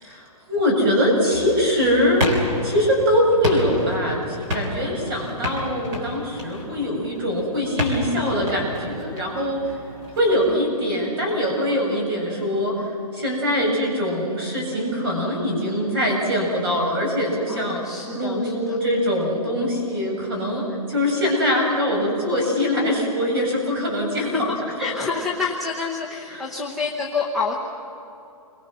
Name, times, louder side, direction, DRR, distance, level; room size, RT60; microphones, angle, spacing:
voice 1, 0.0-9.7 10.1-17.8 18.1-24.5 24.8-25.1 26.3-26.4, equal, 40° right, -1 dB, 7.4 m, -23 dB
sound 1, 1.3-10.5, left 1 dB, 20° right, 3.3 m, -31 dB
voice 2, 17.5-18.8 24.2-24.5 24.8-27.5, left 5 dB, ahead, -6 dB, 0.8 m, -28 dB
29.5 x 23.5 x 6.2 m, 2.9 s
hypercardioid pair, 175°, 19 cm